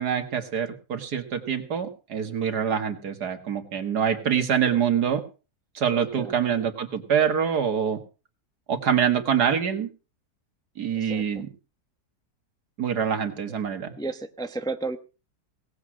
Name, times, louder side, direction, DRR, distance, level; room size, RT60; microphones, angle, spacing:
voice 1, 0.0-5.2 5.7-8.0 8.7-9.9 10.8-11.5 12.8-13.9, right 8 dB, 85° right, 7 dB, 2.3 m, -25 dB
voice 2, 6.0-6.3 10.9-11.4 14.0-15.0, right 3 dB, 5° left, 8 dB, 0.7 m, -33 dB
18.5 x 8.2 x 6.2 m, 0.34 s
omnidirectional pair, 1.7 m